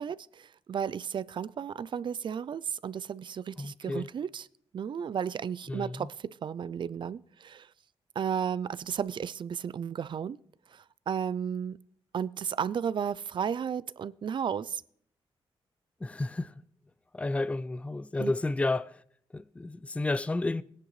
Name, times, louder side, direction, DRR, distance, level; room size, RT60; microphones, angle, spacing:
voice 1, 0.0-4.4 4.7-7.7 8.2-10.4 10.7-11.8 12.1-14.8 18.2-18.3, right 7 dB, 50° right, 0.4 m, -33 dB
voice 2, 3.6-4.1 5.7-6.1 16.0-16.5 17.1-18.9 19.3-20.6, left 2 dB, 10° left, 0.4 m, -31 dB
18.0 x 10.5 x 3.2 m
cardioid pair, 100°, 10 cm